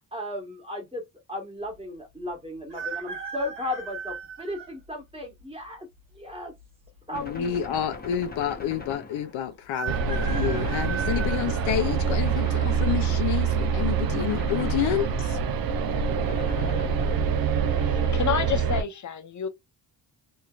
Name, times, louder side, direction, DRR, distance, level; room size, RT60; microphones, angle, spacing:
voice 1, 0.1-1.0 1.3-5.9 6.1-6.5 7.1-7.6, left 1 dB, 10° right, 1.5 m, -35 dB
sound 1, 2.7-4.7 5.4-5.5 6.6-7.2 7.5-7.6 7.8-7.9 9.7-12.3 12.8-13.3 14.4-14.7 15.0-15.1 15.6-16.0 16.5-16.7, right 6 dB, 80° right, 1.4 m, -37 dB
voice 2, 7.1-15.4, left 10 dB, 80° left, 0.6 m, -29 dB
Gunshot gunfire, 7.1-9.6 10.2-11.6 12.3-13.3 14.2-15.6 16.3-17.5, left 3 dB, 20° left, 1.0 m, -42 dB
sound 2, 9.9-18.8, right 6 dB, 50° right, 0.6 m, -25 dB
voice 3, 17.7-19.5, left 8 dB, 40° left, 0.8 m, -29 dB
3.1 x 2.8 x 2.4 m
cardioid pair, 90°, 46 cm